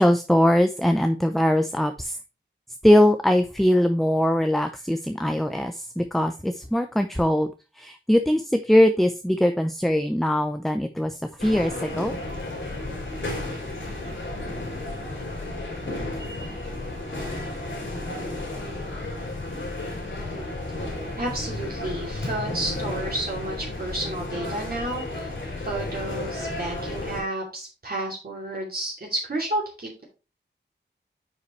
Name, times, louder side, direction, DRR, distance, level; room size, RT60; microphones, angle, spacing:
voice 1, 0.0-2.2 2.8-7.5 7.8-12.1, equal, ahead, 7 dB, 0.6 m, -21 dB
sound 1, 11.4-27.2, left 2 dB, 80° left, 4.0 m, -33 dB
voice 2, 21.2-25.3 25.6-30.0, right 1 dB, 50° right, -3 dB, 2.7 m, -31 dB
9.6 x 5.1 x 3.2 m, 0.31 s
wide cardioid pair, 95°, 20 cm